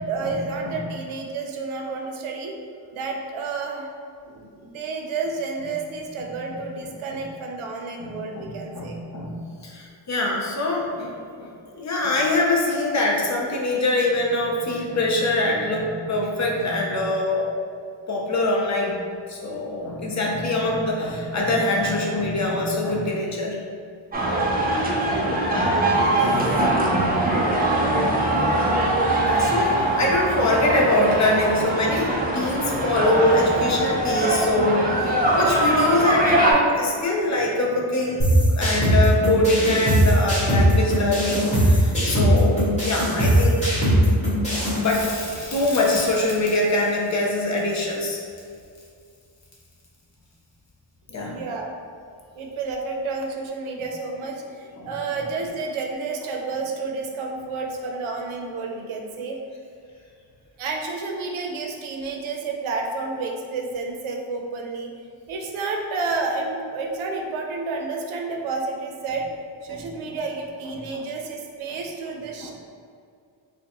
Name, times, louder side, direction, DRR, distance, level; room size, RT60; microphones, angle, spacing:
voice 1, 0.1-2.6 2.9-3.9 4.2-9.0 25.8-26.2 51.2-51.7 52.4-59.4 60.6-64.9 65.3-69.3 69.6-72.5, right 3 dB, 90° right, 2 dB, 0.6 m, -30 dB
voice 2, 8.0-9.3 9.6-17.5 18.1-19.0 19.3-23.6 29.4-43.6 44.6-45.0 45.5-48.2 51.1-51.3 54.8-54.9 69.7-69.8 70.9-71.0 72.4-72.5, left 2 dB, 40° left, -2 dB, 0.5 m, -23 dB
sound 1, 24.1-36.5, right 1 dB, 20° right, 0.4 m, -22 dB
sound 2, 38.2-44.8, equal, 15° left, 1.5 m, -19 dB
Crackle, 44.8-50.0 52.7-52.8, left 2 dB, 55° left, 1.0 m, -38 dB
4.5 x 2.2 x 2.9 m, 2.3 s
wide cardioid pair, 155°, 47 cm